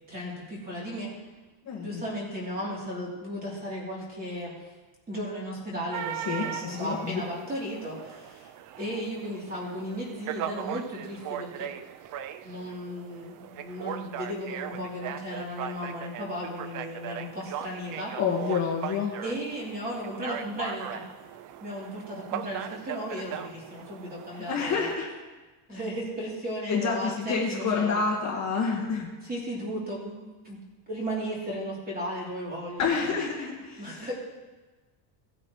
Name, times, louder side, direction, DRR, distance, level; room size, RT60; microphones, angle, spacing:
voice 1, 0.1-1.1 1.8-4.7 5.1-8.5 8.8-11.7 12.4-18.1 19.2-21.0 21.6-24.9 25.7-28.0 29.3-30.6 30.9-33.2 33.8-34.1, equal, 20° right, -5 dB, 3.1 m, -35 dB
voice 2, 1.6-2.0 6.1-7.2 18.2-19.2 24.3-25.1 25.7-25.8 26.7-29.1 32.8-34.1, left 5 dB, 35° left, -2 dB, 1.6 m, -28 dB
sound 1, 5.9-25.0, right 10 dB, 40° right, 0.4 m, -39 dB
17.5 x 9.1 x 3.1 m, 1.2 s
cardioid pair, 170°, 49 cm